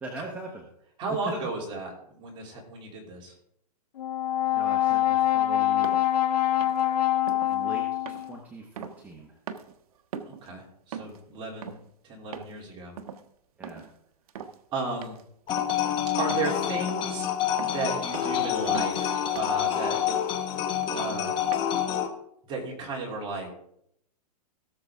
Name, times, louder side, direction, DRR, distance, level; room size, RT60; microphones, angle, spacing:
voice 1, 0.0-0.7 1.1-1.3 4.6-5.9 7.5-9.4 13.6-13.9, right 3 dB, 10° right, 0 dB, 1.0 m, -41 dB
voice 2, 1.0-3.3 10.2-11.8 12.0-12.9 14.7-15.2 16.1-17.3 17.6-20.0 20.9-21.5 22.5-23.5, right 3 dB, 25° right, -2 dB, 3.0 m, -34 dB
Brass instrument, 4.0-8.4, left 12 dB, 85° left, 1.5 m, -25 dB
sound 1, 5.8-6.1 6.6-6.9 7.3-7.6 8.1-9.2 9.5-9.8 10.1-10.5 10.9-11.2 11.6-11.9 12.3-12.6 13.0-13.2 13.6-14.0 14.3-14.6 15.0-15.2 15.6-15.9 16.3-16.6 16.9-17.2 17.6-17.8 18.1-18.4 18.7-19.0 19.4-19.6 20.1-20.3 20.8-21.1 21.5-21.6, right 8 dB, 65° right, 1.0 m, -40 dB
sound 2, 15.5-22.1, left 9 dB, 25° left, 1.1 m, -27 dB
17.5 x 6.8 x 3.6 m, 0.74 s
hypercardioid pair, 155°, 20 cm